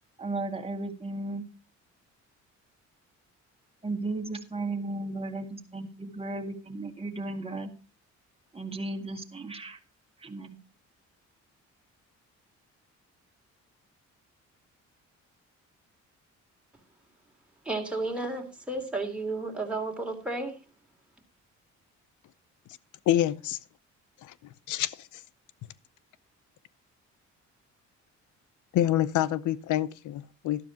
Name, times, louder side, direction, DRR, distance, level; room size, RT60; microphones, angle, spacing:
voice 1, 0.2-1.5 3.8-7.7 8.5-9.8 10.2-10.6, right 2 dB, 20° right, 2.1 m, -35 dB
voice 2, 17.6-20.6, right 2 dB, 5° right, 3.1 m, -32 dB
voice 3, 23.1-23.6 24.2-24.3 24.7-25.1 28.7-30.7, left 12 dB, 75° left, 0.7 m, -27 dB
12.5 x 12.0 x 2.9 m
cardioid pair, 90°, 30 cm